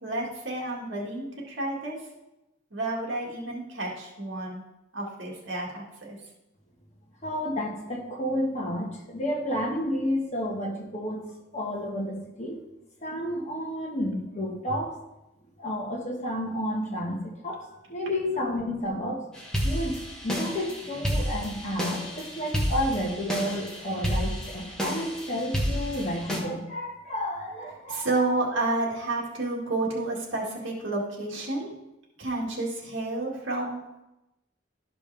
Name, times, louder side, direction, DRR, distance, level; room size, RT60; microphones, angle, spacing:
voice 1, 0.0-2.0 2.7-4.6 4.9-6.2 21.1-21.2 27.9-31.7 32.2-33.8, right 2 dB, 65° right, -3 dB, 1.9 m, -30 dB
voice 2, 7.2-11.3 11.5-12.6 13.0-15.0 15.6-19.3 19.6-28.3, equal, 35° left, -1 dB, 1.4 m, -31 dB
sound 1, 19.4-26.4, equal, 5° left, 1.3 m, -31 dB
12.5 x 5.2 x 3.4 m, 0.95 s
head